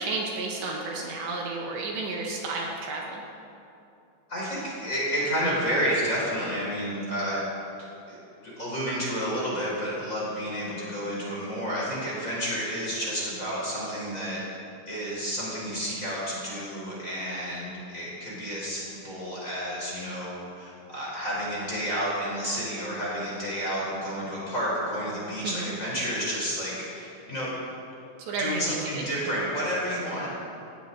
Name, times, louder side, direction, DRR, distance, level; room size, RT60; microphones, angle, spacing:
voice 1, 0.0-3.2 25.4-25.7 28.3-29.0, right 3 dB, 70° right, -1 dB, 3.5 m, -32 dB
voice 2, 4.3-7.4 8.1-8.2 8.4-14.4 14.9-27.5 28.4-30.3, equal, 15° left, -7 dB, 4.4 m, -30 dB
18.0 x 17.5 x 4.1 m, 2.7 s
omnidirectional pair, 5.5 m